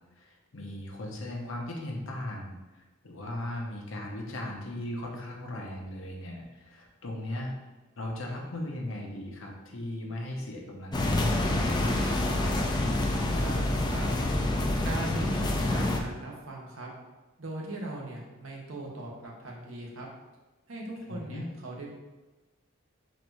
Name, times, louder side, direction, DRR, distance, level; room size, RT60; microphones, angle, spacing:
voice 1, 0.2-7.5 8.0-11.8 21.1-21.5, left 1 dB, 70° left, 0 dB, 0.9 m, -38 dB
sound 1, 10.9-16.0, left 1 dB, 20° left, 0.4 m, -27 dB
voice 2, 12.7-14.0 14.8-16.9 17.4-20.1 20.7-21.9, right 1 dB, 75° right, -2 dB, 1.0 m, -40 dB
4.2 x 2.6 x 4.6 m, 1.2 s
head